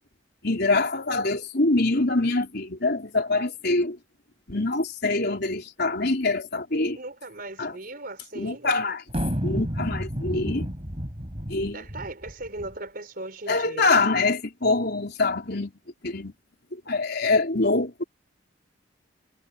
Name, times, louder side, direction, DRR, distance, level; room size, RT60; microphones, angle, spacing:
voice 1, 0.4-4.0 4.5-7.0 7.6-7.7 8.3-9.0 9.4-10.7 11.5-11.8 13.5-15.7 16.0-16.3 16.7-18.0, left 3 dB, 55° left, 4.1 m, -24 dB
voice 2, 6.9-8.9 11.7-13.9, right 2 dB, 50° right, 5.0 m, -38 dB
sound 1, 9.1-12.7, equal, 30° right, 4.1 m, -31 dB
head